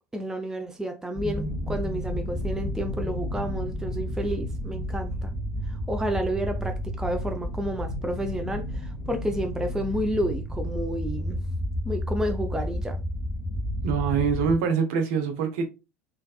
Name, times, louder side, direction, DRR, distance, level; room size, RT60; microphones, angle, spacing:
voice 1, 0.1-5.3 5.7-11.4 11.8-13.0, equal, 5° right, 0.6 m, -30 dB
sound 1, 1.1-14.6, equal, 25° left, 1.7 m, -31 dB
voice 2, 13.8-15.6, right 6 dB, 55° right, 0.8 m, -24 dB
3.4 x 3.3 x 2.4 m
figure-of-eight pair, 75°, 8 cm